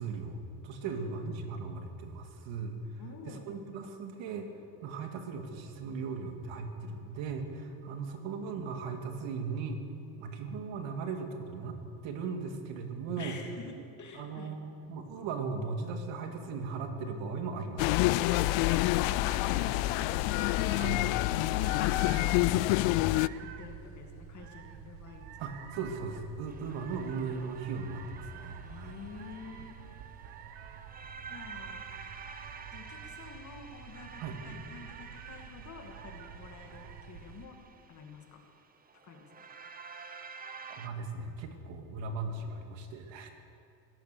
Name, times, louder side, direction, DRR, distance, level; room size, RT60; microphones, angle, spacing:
voice 1, 0.0-2.8 3.2-4.5 4.8-9.8 10.2-13.4 14.1-17.9 20.8-21.0 25.4-29.0 34.2-34.4 40.6-43.3, right 4 dB, 65° right, 5 dB, 2.3 m, -38 dB
voice 2, 3.0-3.5 13.2-14.6 18.9-20.7 21.1-25.3 28.6-29.8 31.3-31.9 32.7-37.6 37.9-38.4 39.0-39.2, left 5 dB, 35° left, 3 dB, 2.4 m, -48 dB
sound 1, 17.8-23.3, left 18 dB, 65° left, 0.5 m, -27 dB
sound 2, 18.3-37.5, right 8 dB, 90° right, 1.3 m, -48 dB
sound 3, 26.5-40.9, right 5 dB, 20° right, 0.7 m, -50 dB
17.0 x 12.0 x 6.9 m, 2.5 s
cardioid pair, 125°, 48 cm